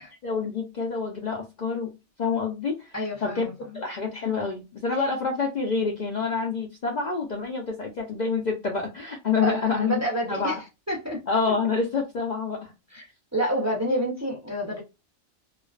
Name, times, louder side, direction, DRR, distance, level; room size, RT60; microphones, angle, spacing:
voice 1, 0.2-1.9 2.2-2.9 3.2-3.5 3.7-10.0 10.3-10.6 11.3-12.7, left 5 dB, 55° left, 0.5 m, -27 dB
voice 2, 2.9-3.7 9.4-10.5 10.9-11.2 12.9-13.0 13.3-14.8, right 1 dB, 20° right, 0.5 m, -28 dB
2.4 x 2.2 x 2.3 m
omnidirectional pair, 1.2 m